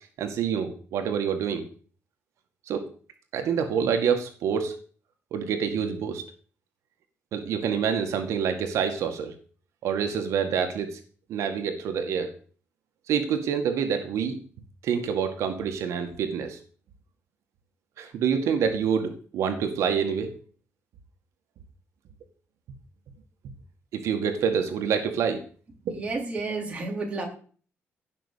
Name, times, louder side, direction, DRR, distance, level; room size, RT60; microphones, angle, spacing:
voice 1, 0.2-1.6 2.7-2.8 3.3-4.7 5.3-6.2 7.3-9.3 9.8-11.0 11.3-12.3 13.1-14.4 14.8-16.6 18.0-20.3 23.9-25.4 25.9-26.0, right 7 dB, 85° right, 6 dB, 2.0 m, -27 dB
voice 2, 25.9-27.3, right 3 dB, 25° right, 1 dB, 4.1 m, -31 dB
16.5 x 6.2 x 8.4 m, 0.43 s
cardioid pair, 155°, 5 cm